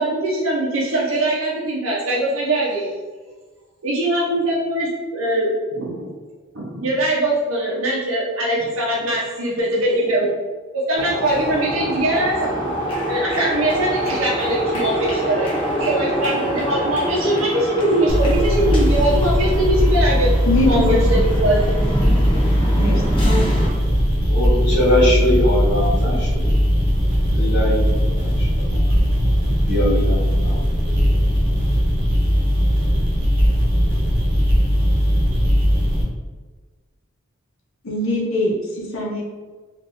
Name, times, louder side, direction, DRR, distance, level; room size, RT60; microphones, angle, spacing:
voice 1, 0.0-2.9 3.8-6.1 6.5-10.3 10.7-20.3 20.6-21.8, right 1 dB, 75° right, -5 dB, 0.7 m, -22 dB
sound 1, 10.9-23.7, equal, 25° left, 0.7 m, -26 dB
sound 2, 18.1-36.0, equal, 40° right, 0.7 m, -18 dB
voice 2, 20.5-21.2 22.8-23.6 37.8-39.2, left 1 dB, 65° left, -3 dB, 0.8 m, -22 dB
voice 3, 24.3-26.5 27.3-28.8 29.5-31.2, left 1 dB, 50° left, -10 dB, 1.2 m, -22 dB
3.4 x 2.5 x 2.6 m, 1.4 s
head